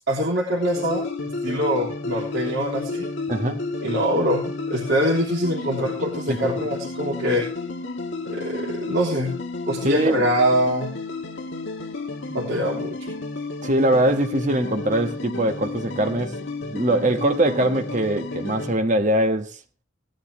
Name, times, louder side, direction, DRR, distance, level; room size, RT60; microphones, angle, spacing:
voice 1, 0.1-1.1 1.4-3.1 3.8-7.5 8.2-9.3 9.7-10.9 12.3-13.1, equal, 55° right, 3.2 m, -24 dB
sound 1, 0.6-18.7, left 3 dB, 65° left, 1.7 m, -32 dB
voice 2, 3.3-3.6 6.3-6.5 9.8-10.3 13.6-16.4 16.7-19.6, right 1 dB, 40° right, 1.4 m, -22 dB
17.0 x 10.5 x 3.3 m
head